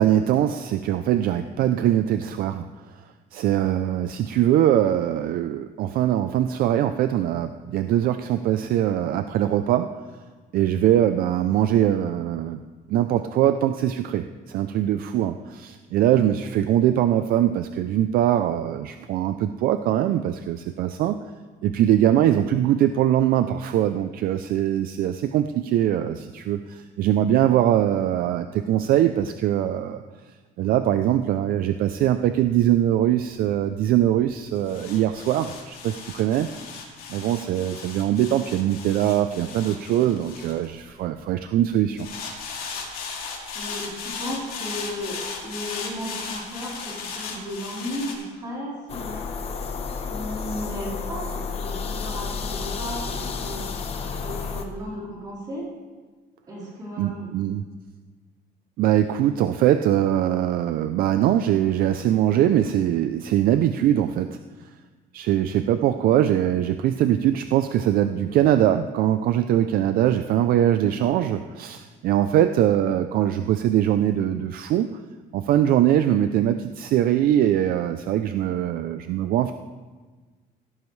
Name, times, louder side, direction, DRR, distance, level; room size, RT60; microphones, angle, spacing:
voice 1, 0.0-2.6 3.3-9.9 10.5-12.6 12.9-21.2 21.6-30.0 30.6-36.5 37.1-42.1 57.0-57.6 58.8-64.4 65.1-74.9 75.3-79.5, right 11 dB, 60° right, 9 dB, 0.4 m, -22 dB
sound 1, 31.8-41.3 42.0-48.1, left 5 dB, 60° left, 2.6 m, -37 dB
voice 2, 43.5-49.3 50.1-53.7 54.2-55.7 56.5-57.3, equal, 20° right, -6 dB, 4.2 m, -35 dB
sound 2, 48.9-54.7, left 5 dB, 35° left, 0.9 m, -31 dB
16.5 x 12.0 x 3.2 m, 1.4 s
cardioid pair, 175°, 17 cm